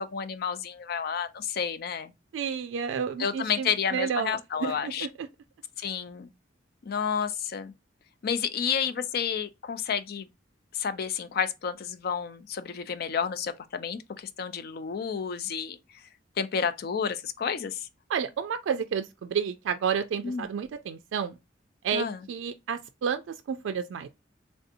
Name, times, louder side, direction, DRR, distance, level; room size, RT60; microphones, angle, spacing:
voice 1, 0.0-2.1 3.2-5.1 5.8-6.3 6.8-7.7 8.2-10.3 10.7-15.8 16.4-17.9 20.2-20.4 21.9-22.2, left 7 dB, 55° left, 0.4 m, -30 dB
voice 2, 2.3-5.3 18.1-21.4 21.8-24.1, right 7 dB, 90° right, 0.3 m, -31 dB
3.4 x 2.6 x 2.5 m
head